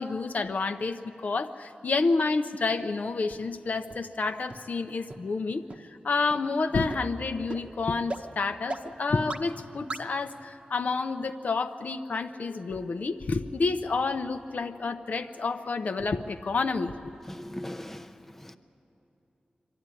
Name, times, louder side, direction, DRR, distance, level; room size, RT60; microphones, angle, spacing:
voice 1, 0.0-17.0, left 4 dB, 60° left, 0.7 m, -29 dB
sound 1, 3.3-3.4 3.9-4.0 4.5-4.6 5.1-5.2 5.7-5.8 6.3-6.4 6.9-7.0 7.5-7.6 8.1-8.2 8.7-8.8 9.3-9.4 9.9-10.0, right 2 dB, 40° right, 0.9 m, -35 dB
voice 2, 17.3-18.6, left 1 dB, 10° left, 0.6 m, -40 dB
23.5 x 13.0 x 9.8 m
wide cardioid pair, 120°, 3 cm